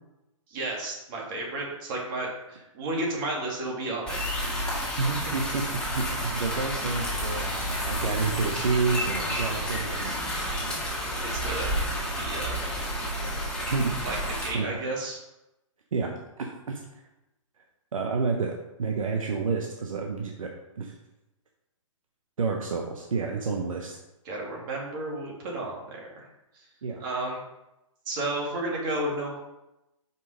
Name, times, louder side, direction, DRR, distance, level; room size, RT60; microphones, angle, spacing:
voice 1, 0.5-4.3 5.0-5.2 11.2-11.7 12.2-12.6 14.0-15.2 24.2-26.3 26.5-26.7 27.0-27.4 28.1-29.4, right 2 dB, 40° right, -2 dB, 2.5 m, -32 dB
sound 1, 4.1-14.5, equal, 5° left, 2.0 m, -30 dB
voice 2, 5.0-10.4 13.7-13.9 14.5-14.8 15.9-16.1 16.4-16.8 17.9-20.5 20.8-20.9 22.4-24.0 26.8-27.0, right 4 dB, 75° right, 2 dB, 1.0 m, -29 dB
5.6 x 5.3 x 5.0 m, 0.93 s
hypercardioid pair, 135°, 17 cm